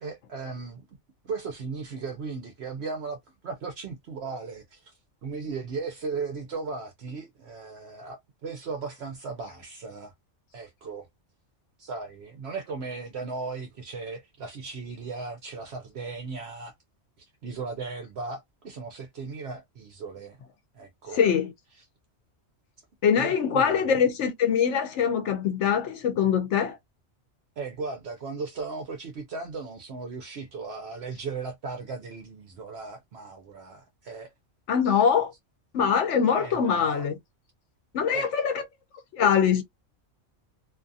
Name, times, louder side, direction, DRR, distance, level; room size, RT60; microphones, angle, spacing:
voice 1, 0.0-0.8 1.2-3.2 3.4-4.9 5.2-10.1 10.5-11.1 11.8-16.7 17.4-20.4 20.7-21.2 23.2-24.0 27.6-34.3 36.4-37.1 38.1-38.3, right 4 dB, 65° right, 0.9 m, -37 dB
voice 2, 21.1-21.5 23.0-26.8 34.7-35.3 35.7-37.2 37.9-38.6 39.1-39.6, left 7 dB, 80° left, 0.9 m, -23 dB
2.6 x 2.4 x 2.5 m
omnidirectional pair, 1.2 m